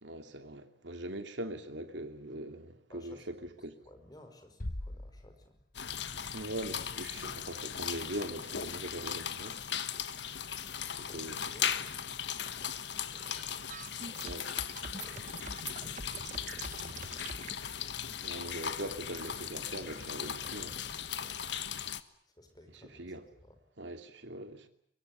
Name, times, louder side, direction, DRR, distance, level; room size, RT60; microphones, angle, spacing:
voice 1, 0.0-3.7 6.3-9.6 11.0-11.4 14.2-14.5 18.2-20.7 22.8-23.2 23.8-24.7, right 1 dB, 80° right, 2.7 m, -41 dB
voice 2, 2.9-3.3 3.8-5.6 10.7-16.9 19.8-21.8 22.3-23.6, left 1 dB, 20° left, 5.6 m, -58 dB
Bass drum, 4.6-6.0, left 1 dB, 50° left, 1.2 m, -41 dB
sound 1, 5.7-22.0, left 8 dB, 70° left, 1.3 m, -38 dB
sound 2, 13.2-17.5, right 4 dB, 45° right, 1.1 m, -45 dB
23.5 x 23.0 x 9.4 m
head